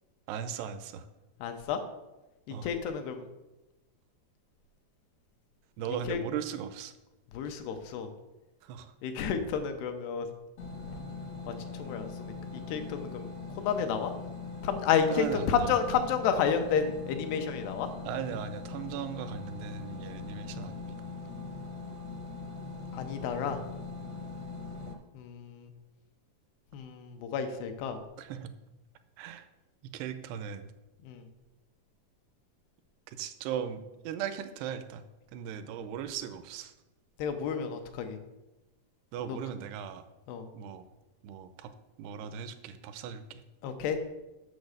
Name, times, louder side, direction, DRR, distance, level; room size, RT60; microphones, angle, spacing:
voice 1, 0.3-1.1 2.5-2.7 5.8-6.9 8.6-8.9 15.1-15.7 18.1-21.0 28.2-28.5 29.2-29.4 29.9-30.7 33.1-35.0 35.3-36.7 39.1-40.0 40.5-40.8 41.2-41.7 42.0-43.4, right 8 dB, 85° right, 11 dB, 2.7 m, -38 dB
voice 2, 1.4-1.8 2.5-3.3 6.0-6.2 7.3-8.1 9.0-10.3 11.5-14.1 14.6-17.9 22.9-23.7 25.1-25.7 26.7-28.0 31.0-31.3 37.2-38.2 39.3-39.4 40.3-40.5 43.6-44.0, left 7 dB, 85° left, 7 dB, 3.0 m, -31 dB
sound 1, 10.6-24.9, left 4 dB, 65° left, 1.6 m, -41 dB
8.5 x 6.6 x 6.4 m, 1.0 s
omnidirectional pair, 4.6 m